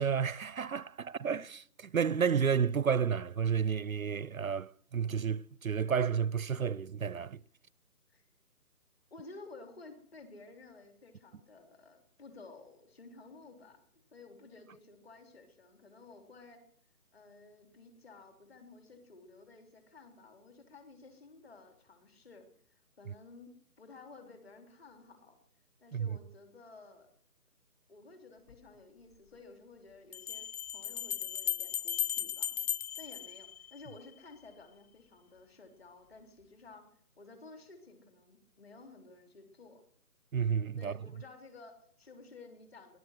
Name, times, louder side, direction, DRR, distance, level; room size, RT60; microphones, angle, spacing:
voice 1, 0.0-7.4 25.9-26.2 40.3-40.9, right 7 dB, 60° right, 0.5 m, -31 dB
voice 2, 9.1-13.8 14.1-16.6 17.1-23.5 23.8-25.4 25.8-27.1 27.9-30.5 30.7-32.6 33.0-36.8 37.2-39.8 40.8-43.0, left 3 dB, 40° left, 3.5 m, -54 dB
Bell, 28.5-28.6 30.1-34.1, left 10 dB, 70° left, 0.5 m, -36 dB
19.0 x 11.0 x 6.4 m
figure-of-eight pair, 165°, 46 cm